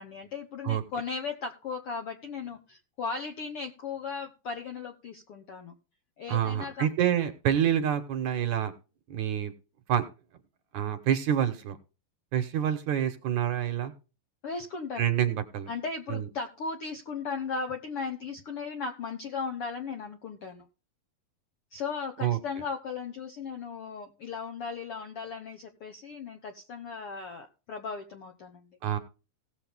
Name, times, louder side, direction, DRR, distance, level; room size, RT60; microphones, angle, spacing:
voice 1, 0.0-5.7 6.2-6.9 14.4-15.0 15.7-20.6 21.7-28.7, left 5 dB, 65° left, 4 dB, 1.4 m, -37 dB
voice 2, 6.3-8.7 9.1-9.5 9.9-10.1 10.7-11.8 12.3-13.9 15.0-15.7 16.1-16.3 22.2-22.4 28.8-29.0, right 10 dB, 65° right, 8 dB, 2.2 m, -27 dB
17.5 x 7.0 x 3.5 m, 0.32 s
omnidirectional pair, 4.1 m